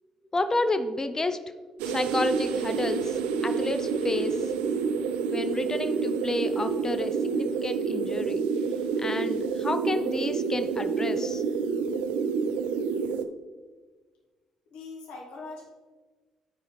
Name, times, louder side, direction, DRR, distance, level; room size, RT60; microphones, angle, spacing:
voice 1, 0.3-1.4 1.8-4.4 5.3-8.4 9.0-11.4, left 2 dB, 25° left, 9 dB, 0.6 m, -30 dB
sound 1, 1.8-13.2, right 5 dB, 75° right, 0.4 m, -28 dB
voice 2, 14.7-15.7, left 3 dB, 70° left, -1 dB, 1.7 m, -41 dB
11.0 x 4.8 x 3.1 m, 1.4 s
hypercardioid pair, 45°, 2 cm